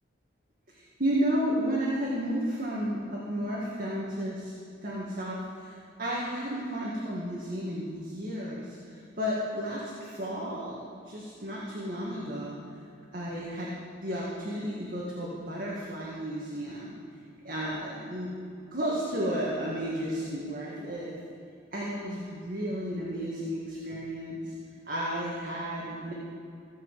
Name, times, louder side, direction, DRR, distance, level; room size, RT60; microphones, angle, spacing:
voice 1, 1.0-4.5 4.8-12.6 13.1-13.7 14.0-17.0 17.4-18.3 18.7-21.2 21.7-24.5 24.9-26.1, equal, 50° right, -5 dB, 1.9 m, -32 dB
16.0 x 6.0 x 7.5 m, 2.5 s
head